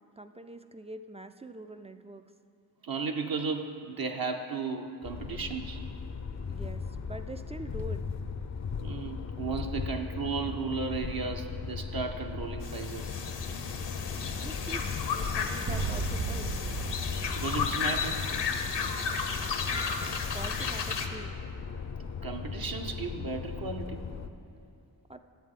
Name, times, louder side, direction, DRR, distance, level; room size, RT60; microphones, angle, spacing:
voice 1, 0.2-2.3 6.5-8.0 14.4-14.8 15.1-16.6 20.3-21.4 25.1-25.2, right 1 dB, 15° right, 9 dB, 0.3 m, -44 dB
voice 2, 2.8-5.8 8.8-13.1 17.4-18.3 22.2-24.0, right 4 dB, 55° right, 3 dB, 0.8 m, -35 dB
sound 1, 5.0-24.3, left 5 dB, 40° left, 0.5 m, -38 dB
sound 2, 12.6-21.1, left 5 dB, 70° left, 0.9 m, -33 dB
sound 3, 15.7-18.6, right 5 dB, 85° right, 0.7 m, -36 dB
11.5 x 7.8 x 3.7 m, 2.5 s
cardioid pair, 45°, 44 cm